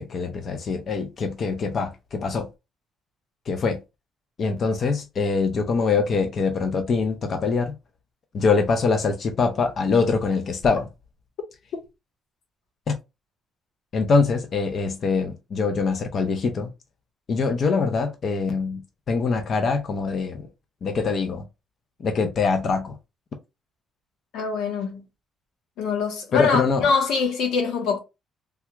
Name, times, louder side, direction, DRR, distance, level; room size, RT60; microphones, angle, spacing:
voice 1, 0.0-2.5 3.5-3.8 4.4-7.7 8.3-10.8 12.9-13.0 13.9-16.7 17.3-18.8 19.1-20.5 20.8-21.4 22.0-23.0 26.3-26.9, left 4 dB, 40° left, 0.5 m, -23 dB
voice 2, 24.3-25.0 25.8-28.0, left 5 dB, 90° left, 1.1 m, -24 dB
3.3 x 2.3 x 2.9 m
cardioid pair, 155°, 0 cm